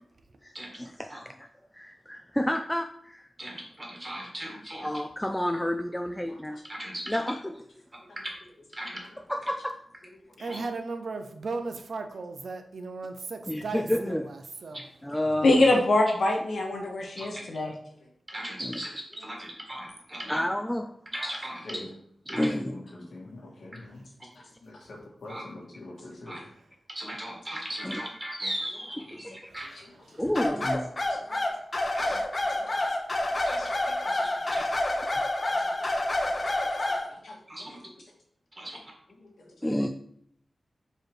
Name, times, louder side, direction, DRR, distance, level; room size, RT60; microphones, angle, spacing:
voice 1, 0.4-1.5 1.7-3.3 4.8-6.6 7.1-7.5 9.3-9.8 13.5-14.3 15.0-15.6 18.6-18.8 20.3-20.9 22.3-22.8 27.8-28.0 30.2-30.9 32.0-32.2 39.6-39.9, left 1 dB, 5° left, 4 dB, 0.3 m, -30 dB
voice 2, 3.4-4.9 6.7-7.2 8.2-8.3 8.8-9.0 10.5-10.6 17.2-17.4 18.3-18.9 19.2-20.4 21.1-21.8 22.3-22.5 25.3-25.4 26.3-26.4 26.9-29.7 31.9-32.2 33.5-33.6 34.5-34.6 37.5-37.8 38.6-38.8, right 1 dB, 25° right, -1 dB, 1.8 m, -37 dB
voice 3, 10.4-14.8 23.9-24.0 26.6-26.7 29.5-30.3, right 3 dB, 70° right, 6 dB, 0.6 m, -37 dB
voice 4, 15.4-17.7, left 2 dB, 70° left, 1 dB, 1.2 m, -23 dB
voice 5, 22.3-24.0 24.4-26.4 29.3-29.4 29.7-29.8 31.1-31.5 32.6-32.8 33.6-34.5 35.5-36.0 36.4-36.8 37.1-37.8 39.2-39.8, left 2 dB, 85° left, -2 dB, 1.8 m, -46 dB
sound 1, 30.3-37.1, left 1 dB, 35° left, 0.9 m, -28 dB
4.9 x 4.7 x 4.6 m, 0.67 s
wide cardioid pair, 120°, 0 cm